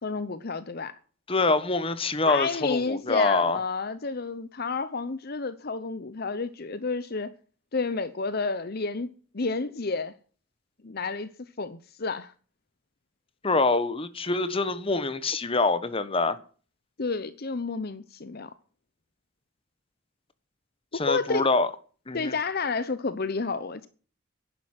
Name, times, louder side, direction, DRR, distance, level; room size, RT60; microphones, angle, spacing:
voice 1, 0.0-0.9 2.3-7.3 7.7-10.1 10.8-11.3 11.6-12.3 17.0-18.5 20.9-21.4 22.1-23.9, left 4 dB, 50° left, 0.9 m, -30 dB
voice 2, 1.3-3.6 13.4-16.4 20.9-21.7 22.1-22.3, left 3 dB, 30° left, 1.3 m, -25 dB
11.0 x 10.5 x 7.6 m
head